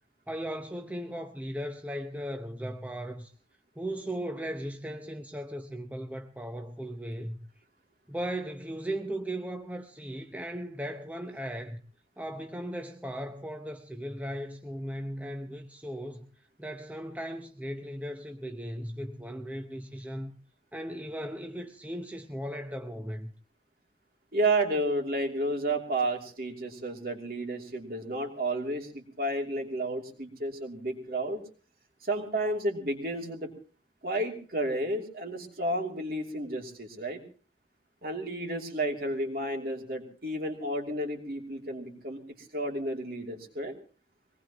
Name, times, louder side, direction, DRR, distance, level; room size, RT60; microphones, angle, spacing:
voice 1, 0.3-3.3 3.8-7.4 8.1-11.8 12.2-16.3 16.6-20.3 20.7-23.3, equal, 10° right, 0.8 m, -37 dB
voice 2, 24.3-31.4 32.0-33.5 34.0-37.2 38.0-43.7, right 1 dB, 55° right, 2.9 m, -31 dB
23.5 x 19.0 x 3.0 m
head